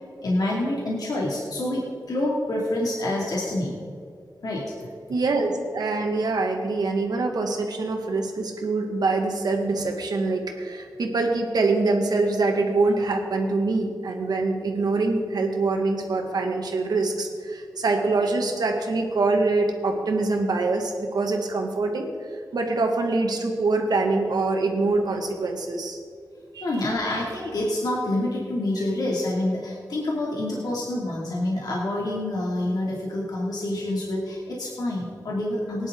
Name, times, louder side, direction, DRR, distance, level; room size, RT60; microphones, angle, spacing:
voice 1, 0.2-3.8 4.4-4.6 26.6-35.9, left 1 dB, 75° left, -4 dB, 2.5 m, -27 dB
voice 2, 5.1-22.1 22.5-26.0 26.5-26.7, right 3 dB, 80° right, 3 dB, 1.8 m, -24 dB
18.0 x 10.5 x 3.8 m, 2.3 s
wide cardioid pair, 85°, 7 cm